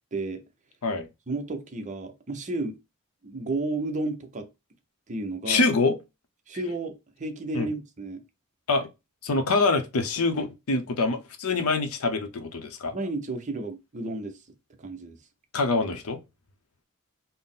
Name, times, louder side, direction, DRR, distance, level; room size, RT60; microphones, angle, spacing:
voice 1, 0.1-0.4 1.3-2.8 3.2-4.5 5.1-5.7 6.5-8.2 12.9-14.4 14.8-15.2, right 2 dB, 35° right, 0.6 m, -32 dB
voice 2, 5.5-6.0 7.5-7.7 8.7-8.9 9.2-12.9 15.5-16.2, left 3 dB, 80° left, 0.6 m, -25 dB
4.0 x 2.0 x 3.7 m
head